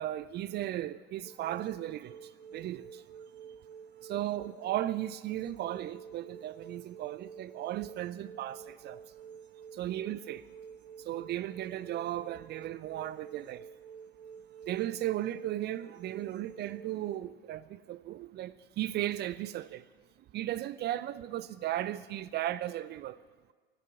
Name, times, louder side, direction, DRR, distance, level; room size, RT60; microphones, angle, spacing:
voice 1, 0.0-2.1 2.5-3.0 4.0-9.0 9.8-10.4 11.1-13.6 14.7-19.8 20.3-23.2, right 13 dB, 35° right, 0.5 m, -36 dB
sound 1, 1.3-17.2, right 7 dB, 85° right, 1.2 m, -50 dB
15.5 x 7.4 x 9.6 m
figure-of-eight pair, 80°, 32 cm